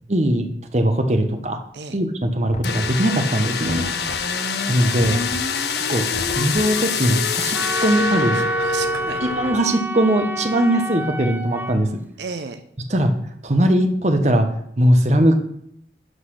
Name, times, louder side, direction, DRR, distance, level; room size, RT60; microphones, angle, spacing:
voice 1, 0.1-1.6 1.9-3.9 4.7-5.2 5.9-6.0 6.4-8.4 9.2-12.0 12.9-13.1 13.4-14.5 14.8-15.4, right 1 dB, 40° right, 6 dB, 1.0 m, -20 dB
Knock, 2.5-3.2 3.7-4.4 5.0-5.6 6.1-6.9, equal, 35° left, 0.9 m, -35 dB
sound 1, 2.6-9.5, left 5 dB, 70° left, 0.9 m, -25 dB
voice 2, 3.9-4.2 8.3-9.2 12.2-12.6, right 5 dB, 80° right, 9 dB, 0.6 m, -33 dB
Wind instrument woodwind instrument, 7.5-11.8, right 1 dB, 10° right, 0.4 m, -27 dB
11.5 x 4.1 x 6.4 m, 0.72 s
head